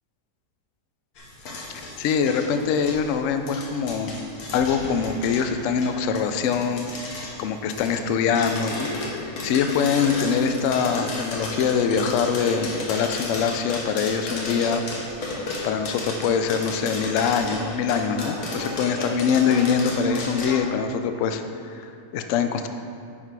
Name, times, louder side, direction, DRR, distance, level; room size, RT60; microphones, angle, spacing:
sound 1, 1.2-20.6, left 2 dB, 60° left, 1.5 m, -34 dB
voice 1, 2.0-4.2 4.5-8.9 9.2-14.8 15.6-22.7, left 6 dB, 85° left, 7 dB, 0.6 m, -24 dB
9.8 x 3.9 x 4.6 m, 2.4 s
omnidirectional pair, 1.9 m